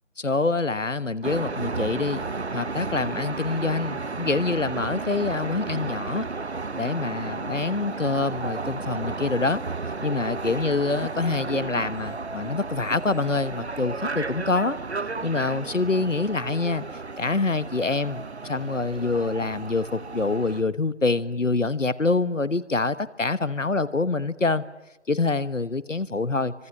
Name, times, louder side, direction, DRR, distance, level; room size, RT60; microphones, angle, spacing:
voice 1, 0.2-2.3 2.5-6.3 6.7-9.6 10.0-14.8 15.2-16.8 17.2-24.6 25.1-26.5, left 3 dB, 85° left, 16 dB, 1.3 m, -26 dB
sound 1, 1.2-20.6, right 3 dB, 60° right, 1.0 m, -33 dB
26.5 x 25.0 x 6.1 m, 0.98 s
figure-of-eight pair, 165°, 37 cm